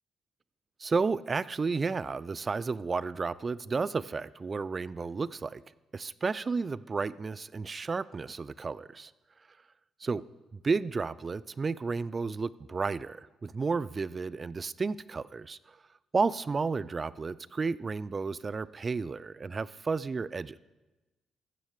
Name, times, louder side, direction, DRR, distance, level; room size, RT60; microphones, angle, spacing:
voice 1, 0.8-5.6 5.9-9.1 10.0-10.2 10.6-15.6 16.1-20.6, right 4 dB, 35° right, 19 dB, 0.4 m, -32 dB
14.5 x 6.3 x 6.6 m, 1.1 s
cardioid pair, 90°, 0 cm